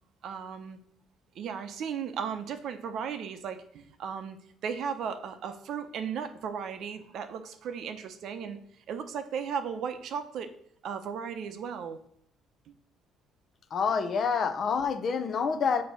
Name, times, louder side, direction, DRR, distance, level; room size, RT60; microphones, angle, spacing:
voice 1, 0.2-0.8 1.3-8.6 8.9-10.5 10.8-12.0 12.7-12.8, right 7 dB, 60° right, 9 dB, 0.6 m, -36 dB
voice 2, 13.7-15.8, left 5 dB, 45° left, 10 dB, 0.6 m, -27 dB
6.1 x 2.8 x 5.3 m, 0.69 s
cardioid pair, 130°, 0 cm